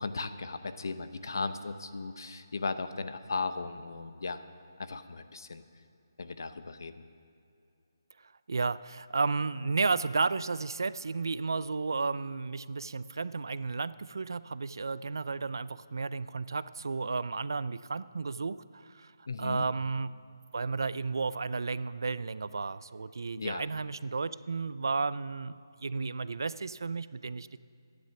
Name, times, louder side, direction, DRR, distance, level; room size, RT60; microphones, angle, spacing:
voice 1, 0.0-4.4 4.8-5.6 6.2-6.9 19.3-19.6 23.4-23.6, left 4 dB, 65° left, 11 dB, 0.7 m, -36 dB
voice 2, 8.2-19.1 19.4-20.1 20.5-27.6, right 4 dB, 70° right, 17 dB, 0.4 m, -33 dB
11.5 x 10.5 x 5.9 m, 2.6 s
hypercardioid pair, 170°, 2 cm